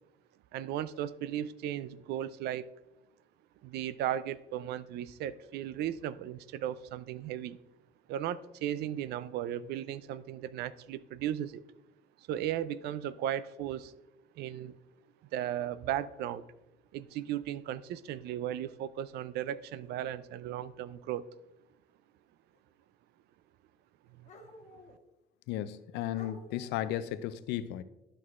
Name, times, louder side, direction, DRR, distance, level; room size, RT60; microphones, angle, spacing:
voice 1, 0.5-2.7 3.6-7.6 8.1-11.6 12.2-13.9 14.4-14.7 15.3-16.4 16.9-21.2 24.2-24.3, right 11 dB, 75° right, 17 dB, 0.4 m, -36 dB
sound 1, 17.2-17.3 18.7-18.8 19.8-20.0 22.5-22.6 24.2-25.0 25.7-25.8 26.1-27.0, left 1 dB, 40° left, 1.2 m, -51 dB
voice 2, 25.5-27.8, left 12 dB, 85° left, 13 dB, 0.5 m, -35 dB
11.5 x 6.1 x 2.4 m, 0.94 s
cardioid pair, 110°, 17 cm